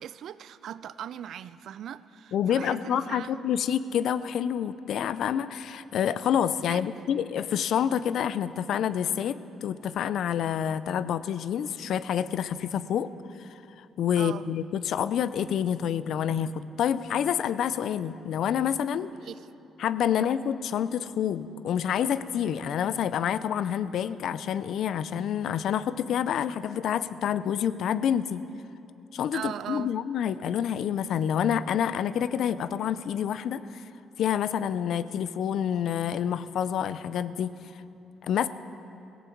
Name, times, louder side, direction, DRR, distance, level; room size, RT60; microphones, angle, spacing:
voice 1, 0.0-3.4 6.6-7.1 14.2-14.5 19.1-19.5 20.1-20.4 29.3-29.9, right 10 dB, 70° right, 16 dB, 0.4 m, -39 dB
voice 2, 2.3-13.1 14.0-19.1 19.8-28.4 29.1-33.8 34.2-37.5 38.2-38.5, left 9 dB, 70° left, 15 dB, 0.5 m, -28 dB
17.0 x 16.0 x 4.6 m, 2.7 s
cardioid pair, 90°, 0 cm